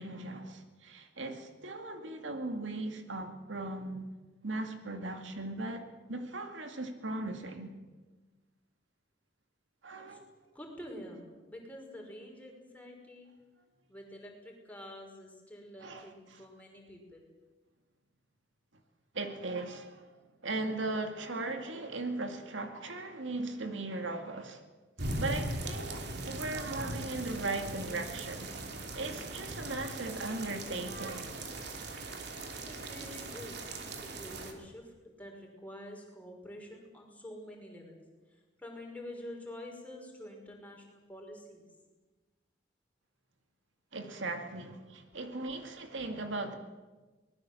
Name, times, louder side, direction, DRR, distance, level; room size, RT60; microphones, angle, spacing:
voice 1, 0.0-4.1 4.4-7.7 9.8-10.2 15.8-16.4 19.1-20.1 20.4-24.6 25.2-28.5 28.9-31.3 43.9-46.5, right 2 dB, 80° right, 2.3 m, -38 dB
voice 2, 10.5-13.3 13.9-17.2 32.7-38.0 38.6-41.7 45.3-45.4, left 1 dB, 10° left, 5.6 m, -47 dB
sound 1, 25.0-34.5, right 2 dB, 60° right, 3.2 m, -40 dB
23.5 x 20.0 x 7.8 m
head